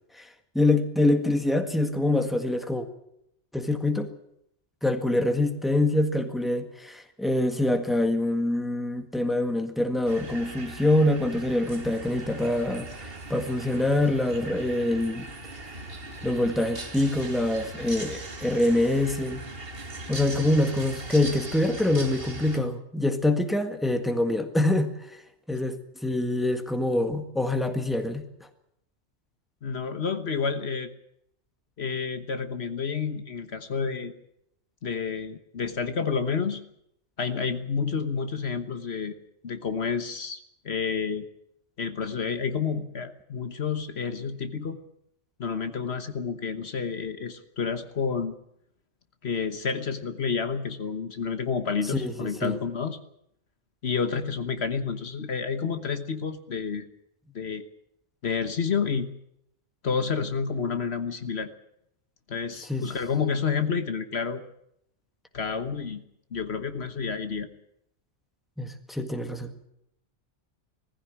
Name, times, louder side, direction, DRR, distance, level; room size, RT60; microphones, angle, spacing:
voice 1, 0.1-2.9 3.5-4.1 4.8-15.3 16.2-19.4 20.1-25.2 25.5-25.8 26.0-28.5 51.9-52.6 62.6-62.9 68.6-69.5, left 1 dB, ahead, 7 dB, 1.6 m, -25 dB
sound 1, 10.1-22.6, right 2 dB, 55° right, 2.3 m, -39 dB
voice 2, 29.6-30.9 31.8-34.1 34.8-36.6 37.2-39.2 39.4-41.3 41.8-44.8 45.4-48.4 49.2-53.0 53.8-56.8 57.3-57.6 58.2-59.1 59.8-61.5 62.3-64.4 65.3-66.0 66.3-67.5, left 5 dB, 60° left, 9 dB, 1.4 m, -29 dB
19.5 x 15.0 x 9.9 m, 0.76 s
omnidirectional pair, 1.2 m